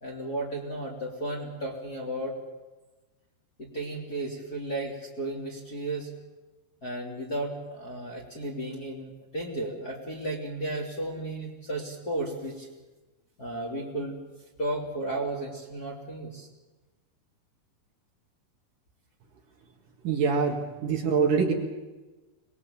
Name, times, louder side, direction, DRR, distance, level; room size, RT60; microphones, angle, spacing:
voice 1, 0.0-2.3 3.6-6.1 6.8-12.7 13.4-14.2 14.6-16.5, right 1 dB, 25° left, -3 dB, 2.8 m, -34 dB
voice 2, 20.0-21.5, right 5 dB, 55° right, 2 dB, 3.2 m, -24 dB
25.5 x 21.0 x 7.2 m, 1.2 s
omnidirectional pair, 5.1 m